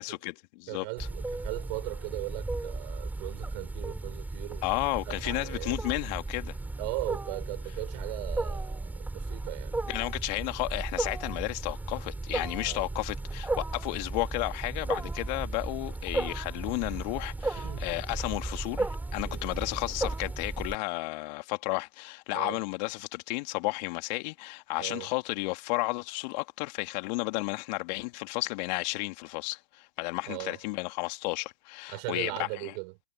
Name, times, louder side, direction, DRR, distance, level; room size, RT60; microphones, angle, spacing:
voice 1, 0.0-0.9 4.6-6.6 9.9-32.7, left 25 dB, 35° left, 2.7 m, -33 dB
voice 2, 0.7-4.6 5.1-5.8 6.8-9.8 12.6-12.8 17.5-17.9 19.2-19.5 22.3-22.6 24.8-25.1 30.3-30.6 31.9-32.9, right 32 dB, 35° right, 5.8 m, -38 dB
Wild animals, 1.0-20.7, right 2 dB, 5° right, 4.6 m, -35 dB
hypercardioid pair, 135°, 36 cm